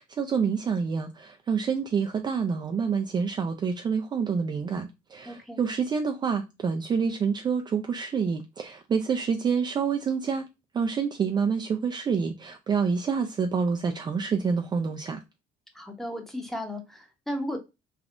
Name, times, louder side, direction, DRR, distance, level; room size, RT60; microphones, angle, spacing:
voice 1, 0.0-10.5 10.7-15.2, right 6 dB, 30° right, 0.3 m, -27 dB
voice 2, 5.3-5.6 15.7-17.6, equal, ahead, 0.8 m, -35 dB
3.4 x 2.3 x 2.4 m
cardioid pair, 105°, 15 cm